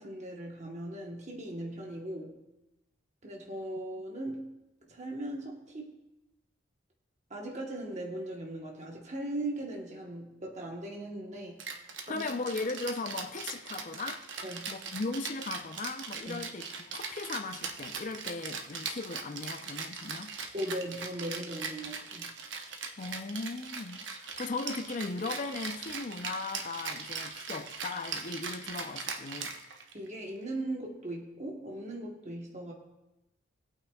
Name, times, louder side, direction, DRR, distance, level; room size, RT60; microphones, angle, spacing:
voice 1, 0.0-2.4 3.2-4.5 4.9-6.0 7.3-11.6 12.1-12.2 14.4-14.7 16.3-16.5 20.5-22.3 29.9-32.7, right 1 dB, 35° right, 1.1 m, -39 dB
Rattle (instrument), 11.6-30.1, right 5 dB, 60° right, 0.9 m, -40 dB
voice 2, 12.1-14.3 14.7-20.4 23.0-29.6, left 3 dB, 40° left, 0.5 m, -37 dB
18.5 x 8.7 x 2.3 m
head